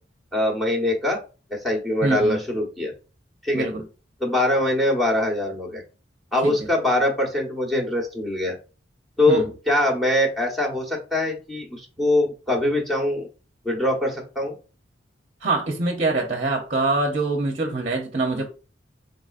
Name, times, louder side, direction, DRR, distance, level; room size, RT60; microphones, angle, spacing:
voice 1, 0.3-1.2 1.5-2.9 3.4-3.7 4.2-5.8 6.3-8.6 9.2-13.3 13.6-14.5, left 1 dB, ahead, 1.1 m, -23 dB
voice 2, 2.0-2.4 3.5-3.8 6.4-6.7 9.3-9.5 15.4-18.5, right 3 dB, 35° right, 0.7 m, -24 dB
3.9 x 3.8 x 2.5 m
head